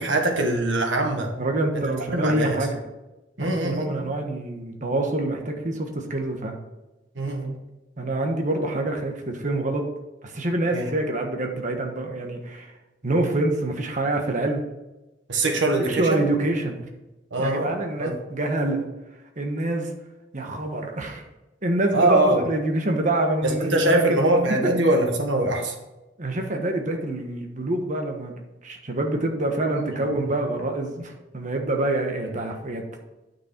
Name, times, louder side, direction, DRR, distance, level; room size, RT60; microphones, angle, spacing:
voice 1, 0.0-1.3 1.7-1.8 2.1-2.6 3.4-4.1 7.1-7.6 10.7-10.9 15.3-16.2 17.3-18.1 21.9-22.5 23.4-25.7 29.6-29.9, right 2 dB, 85° right, 3 dB, 1.6 m, -23 dB
voice 2, 1.4-2.8 3.4-6.6 8.0-9.9 10.2-12.7 13.0-14.6 15.8-16.9 17.4-18.9 19.4-19.9 20.3-21.2 21.6-24.4 26.2-32.8, right 1 dB, 45° right, 3 dB, 1.3 m, -26 dB
9.7 x 6.2 x 4.5 m, 1.0 s
head